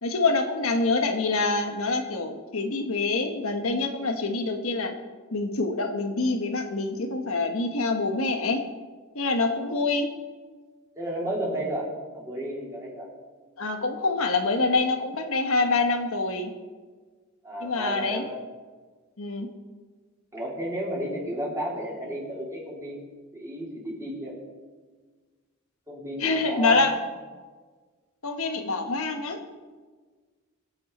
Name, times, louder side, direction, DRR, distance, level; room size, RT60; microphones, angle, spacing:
voice 1, 0.0-4.9 5.3-8.6 9.1-10.1 13.6-16.5 17.6-18.2 19.2-19.5 26.2-27.0 28.2-29.4, left 3 dB, 70° left, 4 dB, 1.3 m, -26 dB
voice 2, 9.4-9.8 11.0-11.9 12.1-13.1 17.4-18.4 20.3-23.0 23.3-24.3 25.9-26.8, right 1 dB, 15° right, -5 dB, 4.2 m, -32 dB
23.5 x 8.6 x 4.3 m, 1.4 s
head